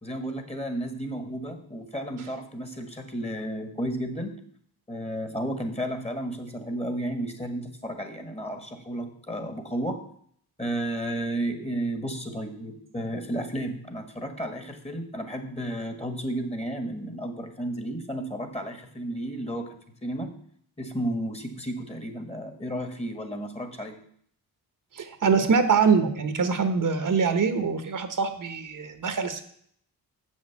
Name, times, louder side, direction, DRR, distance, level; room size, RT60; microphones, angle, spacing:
voice 1, 0.0-4.4 4.9-10.0 10.6-19.8 20.0-20.3 20.8-24.0, right 1 dB, 15° left, 7 dB, 1.7 m, -32 dB
voice 2, 24.9-29.4, right 5 dB, 55° right, 8 dB, 1.3 m, -24 dB
7.5 x 6.5 x 7.2 m, 0.63 s
cardioid pair, 80°, 38 cm